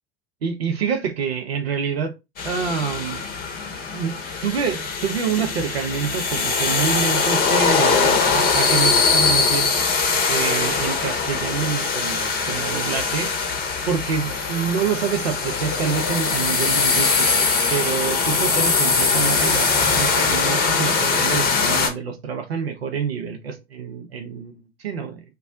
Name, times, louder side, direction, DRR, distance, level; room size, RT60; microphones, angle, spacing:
voice 1, 0.4-2.1 2.4-3.2 3.9-4.2 4.4-9.7 10.3-13.3 13.9-24.5 24.8-25.2, right 6 dB, 80° right, 0.7 m, -27 dB
sound 1, 2.4-21.9, left 4 dB, 30° left, 0.7 m, -21 dB
2.3 x 2.1 x 3.5 m
figure-of-eight pair, 75°, 31 cm